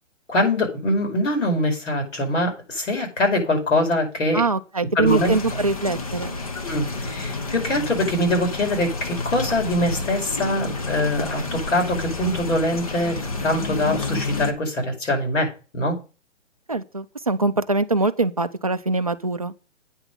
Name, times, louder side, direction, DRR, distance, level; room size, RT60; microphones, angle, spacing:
voice 1, 0.3-4.4 5.0-5.3 6.6-16.0, left 1 dB, 75° left, 2 dB, 5.1 m, -23 dB
voice 2, 4.3-6.4 16.7-19.5, right 3 dB, 30° right, 8 dB, 0.4 m, -23 dB
sound 1, 5.1-14.5, left 3 dB, 30° left, 0.9 m, -30 dB
8.9 x 5.9 x 6.4 m, 0.33 s
hypercardioid pair, 175°, 37 cm